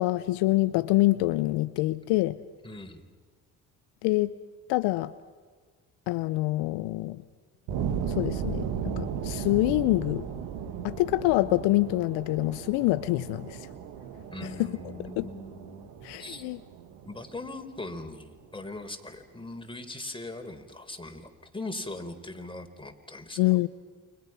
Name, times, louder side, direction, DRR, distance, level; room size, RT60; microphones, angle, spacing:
voice 1, 0.0-2.4 4.0-4.3 4.7-5.1 6.1-7.2 8.0-10.2 10.8-13.7 14.4-14.8 15.2-15.3 16.0-16.6 23.4-23.7, left 19 dB, 75° left, 14 dB, 0.8 m, -26 dB
voice 2, 2.6-3.0 14.3-15.9 16.2-16.5 17.0-23.4, left 2 dB, 10° left, 4 dB, 4.2 m, -40 dB
sound 1, 7.7-18.4, right 7 dB, 75° right, 2.1 m, -36 dB
29.5 x 24.5 x 6.0 m, 1.5 s
hypercardioid pair, 50°, 42 cm